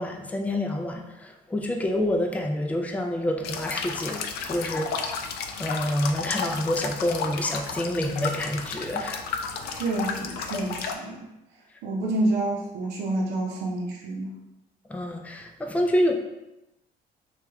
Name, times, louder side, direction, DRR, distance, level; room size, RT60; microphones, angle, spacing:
voice 1, 0.0-4.2 4.5-5.2 5.6-9.3 14.9-16.1, left 1 dB, 10° left, 3 dB, 0.4 m, -27 dB
sound 1, 3.4-10.9, left 5 dB, 70° left, 0.4 m, -32 dB
voice 2, 9.7-11.3 11.8-14.3, right 2 dB, 90° right, -1 dB, 0.6 m, -28 dB
3.1 x 2.4 x 3.4 m, 0.93 s
cardioid pair, 110°, 17 cm